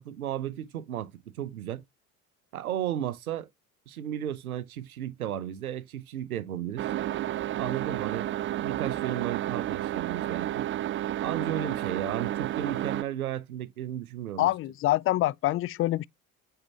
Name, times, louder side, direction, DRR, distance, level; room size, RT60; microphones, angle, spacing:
voice 1, 0.0-1.8 2.5-3.5 3.9-6.9 7.6-8.2 8.6-10.7 11.2-14.5, right 11 dB, 80° right, 0.9 m, -34 dB
sound 1, 6.8-13.0, right 13 dB, 30° right, 0.5 m, -31 dB
voice 2, 14.4-16.0, left 15 dB, 30° left, 0.4 m, -25 dB
8.8 x 4.5 x 2.9 m
hypercardioid pair, 65°, 43 cm